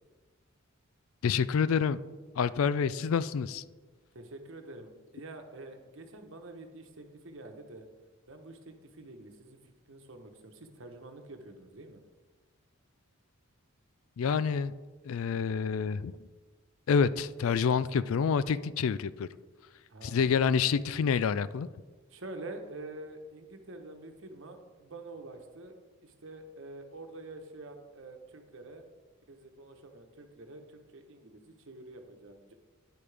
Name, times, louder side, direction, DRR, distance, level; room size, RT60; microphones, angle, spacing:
voice 1, 1.2-2.0 2.4-3.6 14.2-14.7 15.0-16.2 16.9-19.3 20.0-21.7, left 6 dB, 70° left, 0.4 m, -27 dB
voice 2, 4.1-7.9 8.3-12.0 19.9-20.3 22.1-25.7 26.0-28.9 29.3-32.5, right 2 dB, 60° right, 1.1 m, -47 dB
10.5 x 8.5 x 3.4 m
head